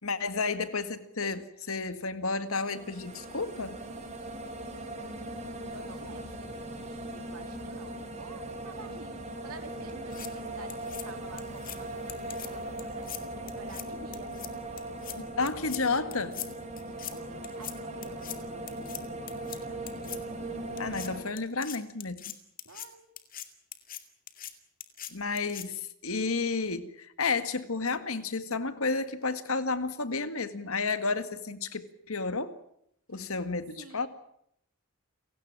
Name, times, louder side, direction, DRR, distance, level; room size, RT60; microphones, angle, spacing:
voice 1, 0.0-3.8 15.2-16.3 20.8-22.3 25.1-32.5 33.1-34.1, left 4 dB, 70° left, 11 dB, 1.9 m, -31 dB
sound 1, 2.5-21.2, right 1 dB, 30° right, 4.6 m, -39 dB
voice 2, 5.7-14.3 15.4-16.0 16.5-19.8 22.6-23.1 33.1-33.2 33.8-34.1, right 3 dB, 85° right, 8 dB, 3.1 m, -50 dB
sound 2, 9.9-10.3 10.7-11.0 11.4-11.8 12.1-12.5 12.8-13.2 13.5-13.8 14.1-14.5 14.8-15.2 15.5-15.8 16.1-16.5 16.8-17.1 17.4-17.7 18.0-18.4 18.7-19.0 19.3-19.6 19.9-20.2 20.8-21.1 21.4-22.9 23.2-23.5 23.7-24.0 24.3-24.5 24.8-25.1 25.4-25.7, left 12 dB, 40° left, 2.3 m, -41 dB
30.0 x 17.0 x 8.9 m, 0.74 s
head